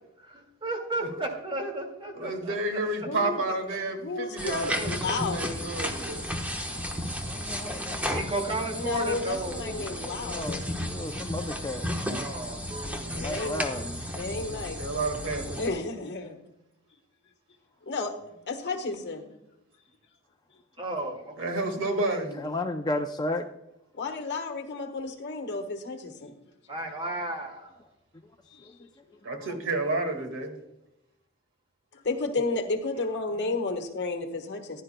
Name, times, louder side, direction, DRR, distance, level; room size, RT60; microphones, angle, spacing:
voice 1, 0.2-2.5 4.7-5.1 8.1-10.4 12.0-13.3 20.8-21.6 26.7-27.8 33.3-33.5, right 2 dB, 25° right, 3 dB, 2.1 m, -35 dB
voice 2, 2.2-6.3 13.3-13.8 14.8-15.6 21.4-22.4 29.2-30.5, right 2 dB, 65° right, 5 dB, 1.9 m, -31 dB
voice 3, 3.0-3.4 4.0-5.7 8.7-10.6 13.1-13.6 14.2-14.8 15.6-16.4 17.9-18.1 18.5-19.2 23.9-26.3 28.5-28.9 31.9-34.8, left 3 dB, 55° left, 5 dB, 1.3 m, -32 dB
sound 1, 4.4-15.7, equal, 5° right, 1.1 m, -34 dB
voice 4, 7.3-8.5 10.2-11.9 13.2-14.1 22.4-23.4 28.8-28.9, left 2 dB, 20° left, 5 dB, 0.5 m, -33 dB
15.0 x 11.0 x 2.2 m, 0.87 s
head